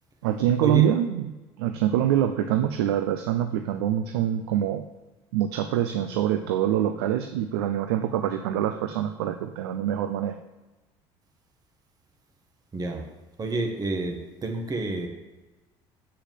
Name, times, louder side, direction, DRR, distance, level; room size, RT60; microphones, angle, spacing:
voice 1, 0.2-1.3 1.6-4.8 5.3-10.4, right 11 dB, 90° right, 8 dB, 0.6 m, -25 dB
voice 2, 13.4-15.1, right 2 dB, 30° right, 3 dB, 1.7 m, -29 dB
7.8 x 6.9 x 7.4 m, 1.1 s
supercardioid pair, 85°, 13 cm